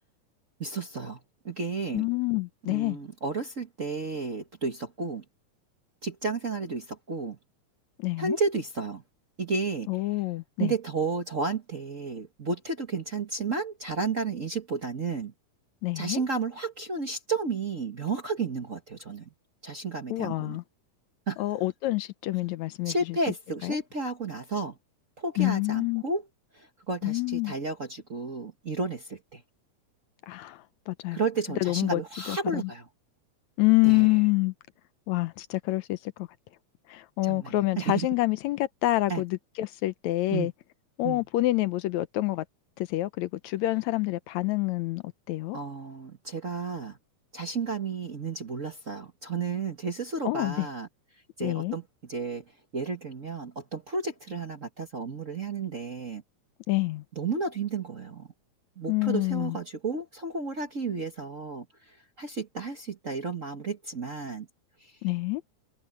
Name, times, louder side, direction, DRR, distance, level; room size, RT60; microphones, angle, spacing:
voice 1, 0.6-1.2 1.4-2.1 2.7-5.2 6.0-7.4 8.2-9.0 9.4-10.2 10.6-15.3 15.9-19.3 19.6-20.6 21.3-21.4 22.8-24.8 25.2-26.2 26.5-29.4 31.1-32.9 33.8-34.2 37.2-38.1 39.1-39.2 40.3-40.5 41.0-41.2 45.5-47.0 47.3-50.9 51.4-51.8 52.1-52.4 52.7-56.2 57.1-58.3 58.8-61.7 62.2-64.5 64.8-64.9, right 4 dB, 35° right, 1.4 m, -32 dB
voice 2, 1.9-3.0 8.0-8.4 9.9-10.7 15.8-16.2 20.1-20.6 21.4-22.9 23.6-23.8 25.4-26.0 27.0-27.5 30.3-30.6 30.9-31.2 31.6-32.0 32.3-32.6 33.6-34.5 35.1-36.3 36.9-40.5 41.0-42.5 42.8-45.6 50.3-50.7 51.4-51.8 56.7-57.0 58.9-59.6 65.0-65.4, left 19 dB, 75° left, 1.9 m, -27 dB
omnidirectional pair, 3.4 m